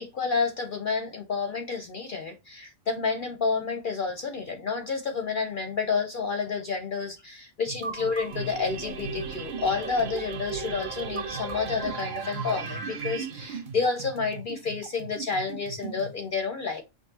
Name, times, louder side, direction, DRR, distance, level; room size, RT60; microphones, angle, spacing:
voice 1, 0.0-16.8, left 5 dB, 55° left, 0.6 m, -30 dB
sound 1, 7.7-16.2, right 4 dB, 50° right, 0.7 m, -39 dB
sound 2, 8.1-13.6, right 5 dB, 80° right, 1.1 m, -37 dB
6.0 x 2.4 x 2.7 m
omnidirectional pair, 1.3 m